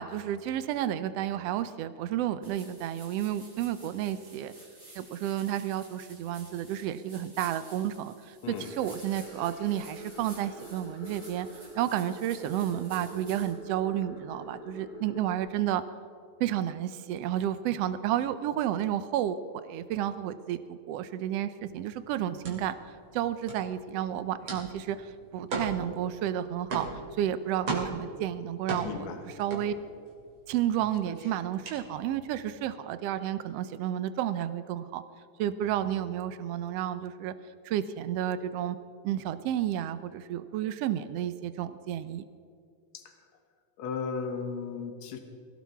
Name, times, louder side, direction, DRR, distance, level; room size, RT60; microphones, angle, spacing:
voice 1, 0.0-4.5 4.9-11.5 11.7-15.8 16.4-19.4 19.6-22.7 23.1-25.0 25.3-26.9 27.2-29.0 29.4-29.7 30.5-35.0 35.4-37.3 37.6-38.8 39.0-42.2, right 11 dB, 75° right, 12 dB, 1.6 m, -31 dB
sound 1, 2.4-13.5, right 2 dB, 10° right, 4.0 m, -52 dB
sound 2, 8.6-15.4, left 1 dB, 35° left, 2.0 m, -46 dB
sound 3, 21.6-30.3 30.6-32.5, right 3 dB, 50° right, 3.2 m, -37 dB
voice 2, 28.8-29.2 42.9-43.2 43.8-45.2, left 5 dB, 70° left, 5 dB, 2.4 m, -35 dB
21.5 x 16.5 x 3.6 m, 2.3 s
omnidirectional pair, 3.4 m